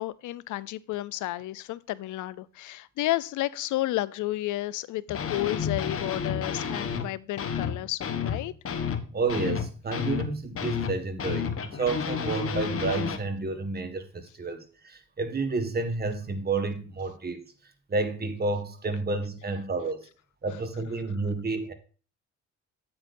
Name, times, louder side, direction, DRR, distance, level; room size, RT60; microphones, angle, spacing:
voice 1, 0.0-8.5, left 16 dB, 80° left, 0.5 m, -32 dB
sound 1, 5.1-7.1 7.4-13.2, left 7 dB, 50° left, 1.1 m, -31 dB
voice 2, 9.1-17.4 17.9-20.0 20.4-21.7, right 3 dB, 30° right, 1.7 m, -30 dB
9.0 x 8.6 x 2.6 m
cardioid pair, 90°, 30 cm